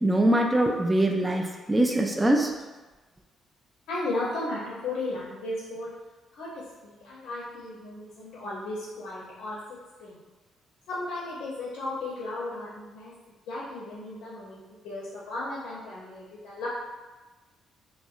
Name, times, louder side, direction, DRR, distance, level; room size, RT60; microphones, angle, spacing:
voice 1, 0.0-2.5, right 1 dB, 20° right, 2 dB, 0.3 m, -23 dB
voice 2, 3.9-5.9 6.4-6.5 6.8-10.2 10.9-16.7, left 2 dB, 70° left, -6 dB, 0.5 m, -35 dB
3.4 x 2.1 x 2.3 m, 1.2 s
hypercardioid pair, 45°, 0 cm